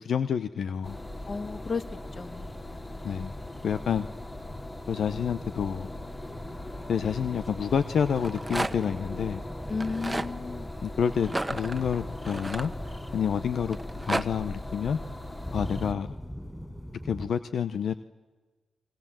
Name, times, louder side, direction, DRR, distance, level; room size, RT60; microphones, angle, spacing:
voice 1, 0.0-1.0 3.0-3.3 3.6-4.1 4.9-5.9 6.9-9.4 10.8-12.7 13.1-13.8 14.0-15.0 15.5-16.1 17.0-17.9, left 7 dB, 75° left, 12 dB, 0.8 m, -28 dB
sound 1, 0.6-17.3, equal, 5° left, 4.8 m, -46 dB
sound 2, 0.8-15.9, left 1 dB, 25° left, 3.2 m, -39 dB
voice 2, 1.3-3.0 9.7-10.7, left 4 dB, 50° left, 11 dB, 1.6 m, -35 dB
Rattle, 8.1-9.0 9.7-10.3 11.2-13.2 13.7-14.3, right 2 dB, 20° right, 1.3 m, -32 dB
29.5 x 22.0 x 7.5 m, 1.3 s
supercardioid pair, 55°, 0 cm